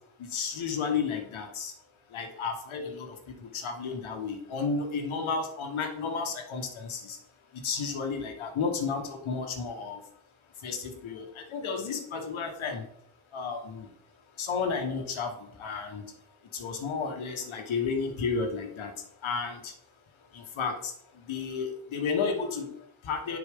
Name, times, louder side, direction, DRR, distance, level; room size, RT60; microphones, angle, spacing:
voice 1, 0.2-1.7 2.1-7.2 7.5-10.0 10.6-12.8 13.3-13.9 14.4-16.1 16.5-19.7 20.3-23.4, left 5 dB, 80° left, 4 dB, 1.4 m, -32 dB
10.0 x 4.5 x 3.6 m, 0.75 s
wide cardioid pair, 170°, 47 cm